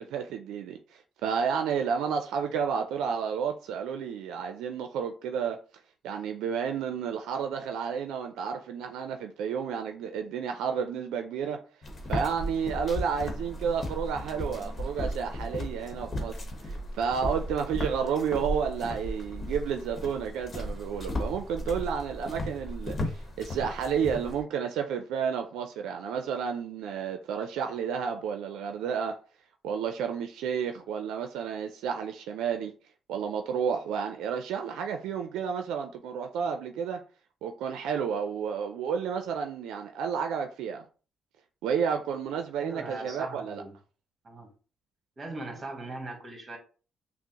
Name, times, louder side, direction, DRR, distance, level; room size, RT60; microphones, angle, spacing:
voice 1, 0.0-5.6 6.0-11.6 12.1-16.4 16.6-29.2 29.6-32.7 33.1-37.0 37.4-40.8 41.6-43.6, right 7 dB, 90° right, 0.4 m, -31 dB
sound 1, 11.8-24.4, left 1 dB, 40° left, 1.0 m, -35 dB
voice 2, 42.6-43.8 44.2-44.5 45.2-46.6, right 2 dB, 35° right, 1.5 m, -39 dB
5.9 x 2.0 x 2.9 m
cardioid pair, 90°, 0 cm